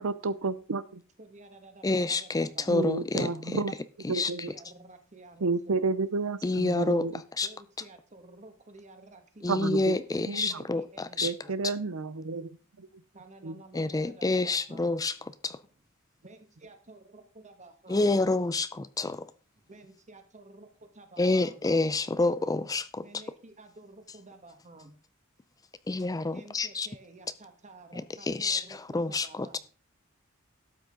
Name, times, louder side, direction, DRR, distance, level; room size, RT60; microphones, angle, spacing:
voice 1, 0.0-1.0 2.7-3.7 4.1-4.5 5.4-7.2 9.5-10.0 10.3-10.6 11.2-13.0 13.4-13.6, right 3 dB, 80° right, 0.7 m, -31 dB
voice 2, 1.2-2.8 4.2-5.9 7.4-11.5 13.1-14.9 16.2-18.1 19.6-21.6 23.0-24.9 26.3-29.6, right 2 dB, 35° right, 1.8 m, -52 dB
voice 3, 1.8-3.6 4.0-4.3 6.4-7.5 9.4-11.3 13.7-15.6 17.9-19.3 21.2-23.0 25.9-26.9 27.9-29.6, left 2 dB, 15° left, 0.4 m, -28 dB
12.5 x 8.4 x 3.8 m
head